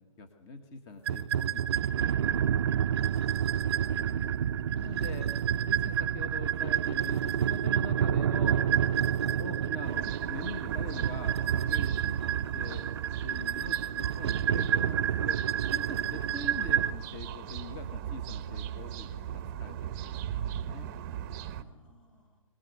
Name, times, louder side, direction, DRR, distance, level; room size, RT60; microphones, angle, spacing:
voice 1, 0.0-1.6 2.0-2.5 3.9-4.3 4.8-5.3 5.7-8.6 9.3-12.8 13.2-15.4 15.7-20.4 20.6-20.9, left 3 dB, 20° left, 6 dB, 1.3 m, -44 dB
sound 1, 1.1-16.9, right 9 dB, 45° right, 0.7 m, -29 dB
voice 2, 3.1-4.0 9.2-9.4 12.6-12.9 16.1-16.3 21.3-22.4, equal, 70° left, 7 dB, 7.3 m, -55 dB
sound 2, 9.8-21.6, right 10 dB, 25° right, 1.0 m, -38 dB
24.5 x 18.5 x 8.1 m, 1.2 s
hypercardioid pair, 160°, 18 cm